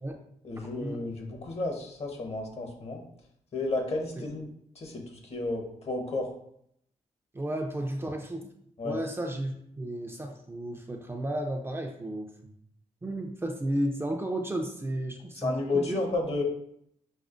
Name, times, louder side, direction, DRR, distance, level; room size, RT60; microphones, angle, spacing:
voice 1, 0.4-3.0 3.5-4.5 4.7-6.3 8.8-9.0 15.3-16.4, left 2 dB, 55° left, 2 dB, 1.0 m, -32 dB
voice 2, 7.3-8.5 8.8-12.5 13.0-16.0, right 1 dB, 20° right, 2 dB, 0.5 m, -33 dB
6.0 x 2.0 x 2.5 m, 0.70 s
cardioid pair, 90°, 13 cm